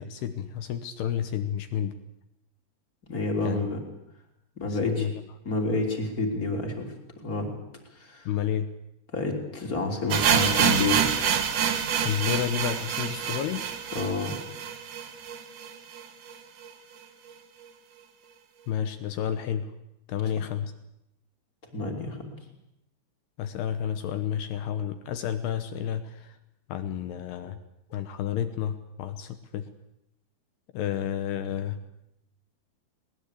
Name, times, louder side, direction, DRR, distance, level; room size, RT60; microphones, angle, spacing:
voice 1, 0.0-1.9 3.4-3.6 4.7-5.1 8.3-8.7 12.0-13.6 18.7-19.7 20.1-20.7 23.4-26.4 26.7-27.6 27.9-29.7 30.7-31.8, left 9 dB, 75° left, 10 dB, 2.4 m, -30 dB
voice 2, 3.1-3.8 4.5-5.1 5.4-6.9 7.2-7.5 7.9-8.3 9.1-11.1 13.9-14.4 21.7-22.3, left 2 dB, 20° left, 2 dB, 3.0 m, -29 dB
sound 1, 10.1-16.0 16.3-16.4 16.6-16.7 17.3-17.4, right 8 dB, 60° right, 2.1 m, -27 dB
23.0 x 20.0 x 8.4 m, 0.84 s
omnidirectional pair, 6.0 m